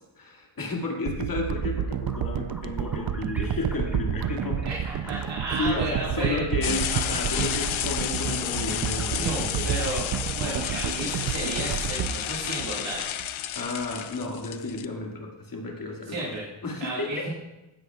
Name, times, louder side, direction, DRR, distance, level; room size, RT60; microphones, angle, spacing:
voice 1, 0.2-4.7 5.0-9.7 13.5-17.3, left 3 dB, 45° left, 0 dB, 2.1 m, -32 dB
sound 1, 1.1-13.3 13.8-13.9, right 9 dB, 50° right, 0.5 m, -30 dB
sound 2, 2.0-6.3 6.7-11.8, equal, 5° right, 2.7 m, -44 dB
voice 2, 4.6-6.4 9.2-13.2 16.0-16.4 16.8-17.3, right 2 dB, 70° right, -5 dB, 2.0 m, -33 dB
sound 3, 6.6-14.9, left 11 dB, 85° left, 0.7 m, -31 dB
15.5 x 9.9 x 2.4 m, 1.0 s
cardioid pair, 95°, 46 cm